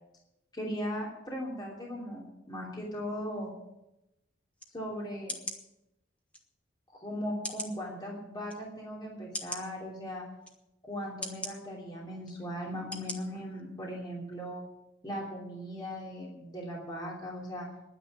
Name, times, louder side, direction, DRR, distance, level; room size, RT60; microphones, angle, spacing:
voice 1, 0.5-3.5 4.7-5.3 6.9-10.2 10.8-14.6 15.0-17.7, equal, 20° left, -3 dB, 3.0 m, -38 dB
sound 1, 4.6-4.7 5.3-5.6 6.3-6.4 7.4-7.8 8.5-8.6 9.3-9.6 10.4-10.6 11.2-11.5 12.2-12.4 12.9-13.2 13.6-13.7, left 1 dB, 5° left, 1.7 m, -38 dB
11.0 x 10.0 x 9.7 m, 0.91 s
head